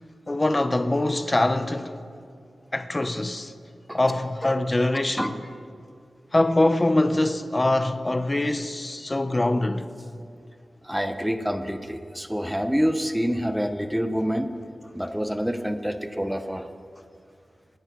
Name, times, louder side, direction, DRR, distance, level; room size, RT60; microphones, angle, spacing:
voice 1, 0.3-1.9 2.7-3.5 3.9-5.3 6.3-9.9, left 2 dB, 30° left, 1.1 m, -23 dB
voice 2, 10.8-14.5 14.9-16.7, equal, 5° right, 1.2 m, -27 dB
29.0 x 10.0 x 4.7 m
cardioid pair, 45°, 0 cm